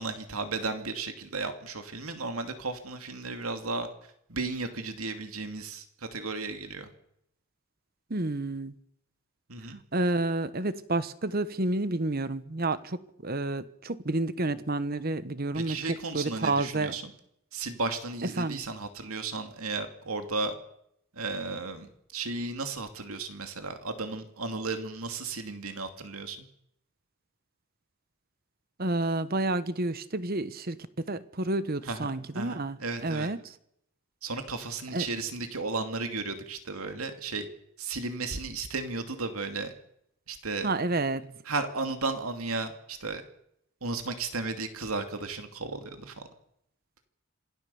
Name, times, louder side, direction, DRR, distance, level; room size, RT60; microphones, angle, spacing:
voice 1, 0.0-6.9 9.5-9.8 15.5-17.1 17.5-20.6 21.1-26.4 31.8-33.3 34.2-37.5 37.8-39.7 40.3-40.7 41.4-43.2 43.8-46.3, right 3 dB, 80° right, 2.6 m, -34 dB
voice 2, 8.1-8.7 9.9-15.8 16.1-16.9 18.4-18.6 28.8-30.8 31.1-33.4 34.9-35.1 40.6-41.3, right 2 dB, 45° right, 1.1 m, -30 dB
26.5 x 17.5 x 7.1 m
head